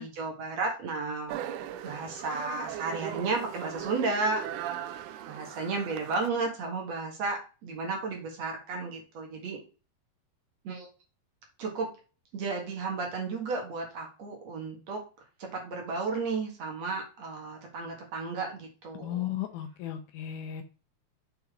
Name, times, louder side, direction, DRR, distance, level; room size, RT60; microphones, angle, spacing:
voice 1, 0.0-1.3 1.8-4.7 5.3-9.6 10.6-10.9 11.6-11.9 12.3-15.0 15.4-19.3, right 3 dB, 55° right, 1 dB, 2.9 m, -33 dB
sound 1, 1.3-6.3, right 11 dB, 80° right, 1.9 m, -38 dB
voice 2, 19.0-20.6, left 11 dB, 75° left, 7 dB, 2.0 m, -35 dB
6.9 x 5.7 x 3.8 m, 0.34 s
omnidirectional pair, 4.0 m